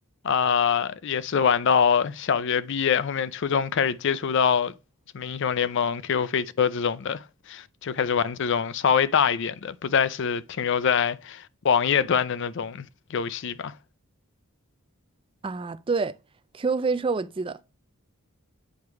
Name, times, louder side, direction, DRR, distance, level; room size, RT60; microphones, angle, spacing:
voice 1, 0.2-4.7 5.1-12.9 13.1-13.7, left 7 dB, 55° left, 0.4 m, -24 dB
voice 2, 15.4-16.2 16.5-17.6, right 4 dB, 25° right, 0.3 m, -27 dB
8.6 x 3.1 x 4.7 m
head